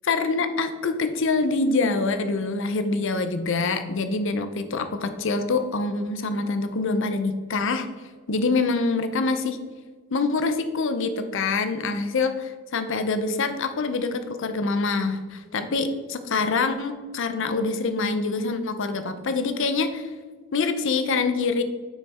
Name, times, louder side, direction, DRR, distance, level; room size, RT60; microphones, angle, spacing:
voice 1, 0.1-7.9 8.3-9.6 10.1-20.1 20.5-21.6, left 3 dB, 65° left, 9 dB, 0.6 m, -25 dB
7.1 x 5.7 x 4.2 m, 1.4 s
head